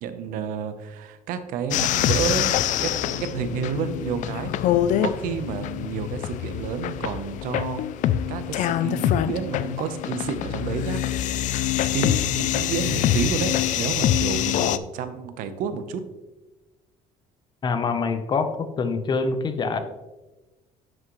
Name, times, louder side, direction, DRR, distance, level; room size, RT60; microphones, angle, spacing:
voice 1, 0.0-7.8 8.3-11.0 11.9-16.0, right 7 dB, 85° right, 10 dB, 0.9 m, -30 dB
sound 1, 1.7-14.8, left 11 dB, 65° left, 0.4 m, -25 dB
voice 2, 17.6-19.8, left 4 dB, 30° left, 9 dB, 0.8 m, -25 dB
10.5 x 6.4 x 3.1 m, 1.1 s
cardioid pair, 140°, 14 cm